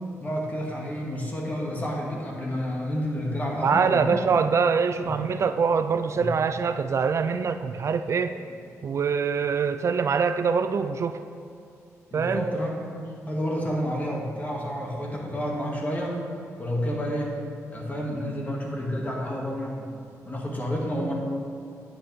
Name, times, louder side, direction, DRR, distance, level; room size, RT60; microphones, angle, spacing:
voice 1, 0.2-4.2 5.0-5.4 6.2-6.3 12.1-12.9 13.3-16.3 16.6-17.3 17.7-19.9 20.2-21.1, equal, 30° left, -2 dB, 2.3 m, -30 dB
voice 2, 3.6-8.3 8.8-11.2 12.1-12.4, right 5 dB, 55° right, 9 dB, 0.4 m, -24 dB
9.8 x 8.9 x 3.5 m, 2.6 s
cardioid pair, 75°, 6 cm